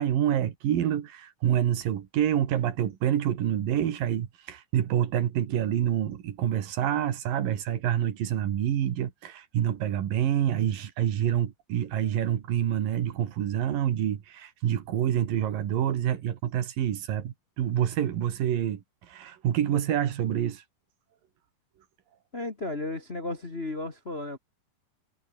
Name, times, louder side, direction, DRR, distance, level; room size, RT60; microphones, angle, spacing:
voice 1, 0.0-20.6, right 10 dB, 85° right, 3.6 m, -27 dB
voice 2, 22.3-24.4, left 2 dB, 25° left, 1.4 m, -34 dB
omnidirectional pair, 3.8 m